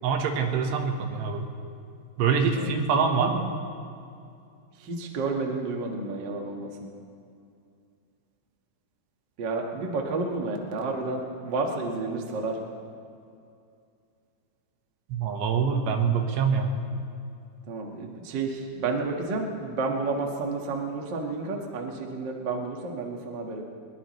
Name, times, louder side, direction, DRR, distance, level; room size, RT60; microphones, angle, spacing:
voice 1, 0.0-1.5 2.2-3.5 15.1-16.8, right 5 dB, 85° right, 4 dB, 3.4 m, -25 dB
voice 2, 4.9-6.7 9.4-12.6 17.7-23.6, right 3 dB, 65° right, 1 dB, 1.1 m, -30 dB
21.5 x 21.0 x 3.2 m, 2.5 s
omnidirectional pair, 4.8 m